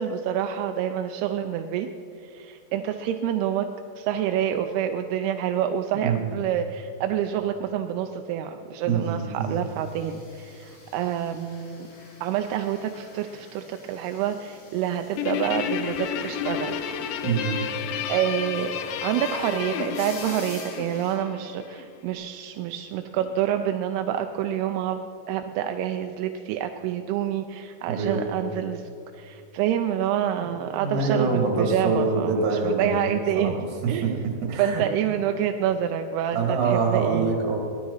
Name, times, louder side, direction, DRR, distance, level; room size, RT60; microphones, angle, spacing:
voice 1, 0.0-1.9 2.2-3.7 4.0-11.9 12.2-16.8 18.1-28.8 29.1-33.5 33.9-34.2 34.6-37.4, right 10 dB, 80° right, 6 dB, 2.4 m, -27 dB
voice 2, 6.0-6.3 8.9-9.6 17.2-17.6 27.9-28.2 30.8-33.5 33.8-34.8 36.3-37.6, right 4 dB, 50° right, 0 dB, 3.6 m, -25 dB
sound 1, 9.6-21.2, left 3 dB, 70° left, 5.5 m, -48 dB
Guitar, 15.2-21.9, left 8 dB, 85° left, 2.0 m, -31 dB
18.0 x 12.5 x 5.6 m, 2.5 s
omnidirectional pair, 5.1 m